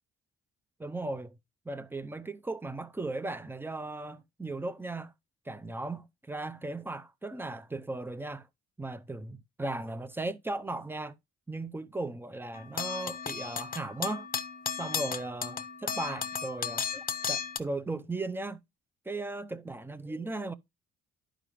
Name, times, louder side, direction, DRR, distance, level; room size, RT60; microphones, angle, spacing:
voice 1, 0.8-1.4 1.7-5.1 5.5-8.5 8.8-11.2 11.5-14.3 14.7-18.6 19.1-20.5, right 2 dB, 5° right, 0.5 m, -37 dB
sound 1, 12.5-17.6, left 6 dB, 30° left, 0.7 m, -35 dB
11.0 x 5.0 x 3.1 m
cardioid pair, 90°, 30 cm